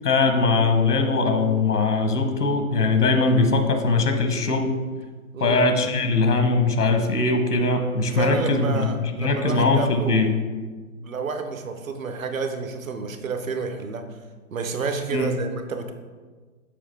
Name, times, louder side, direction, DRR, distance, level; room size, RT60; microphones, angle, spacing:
voice 1, 0.0-4.7 5.4-10.3 15.1-15.3, left 3 dB, 80° left, 5 dB, 1.0 m, -21 dB
voice 2, 5.3-5.7 8.1-10.4 11.0-14.0 14.5-15.9, right 4 dB, 65° right, 7 dB, 0.8 m, -29 dB
7.1 x 4.8 x 3.5 m, 1.4 s
figure-of-eight pair, 130°, 45 cm